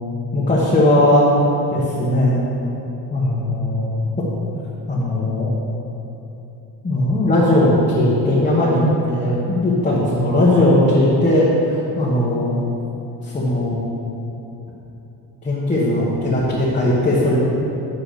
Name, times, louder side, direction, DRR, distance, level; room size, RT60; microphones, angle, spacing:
voice 1, 0.3-1.3 1.7-2.4 3.1-4.2 4.9-5.5 6.8-11.5 12.0-12.6 13.2-13.9 15.4-17.4, left 1 dB, 15° left, -7 dB, 1.2 m, -18 dB
8.3 x 4.8 x 6.5 m, 3.0 s
cardioid pair, 145°, 43 cm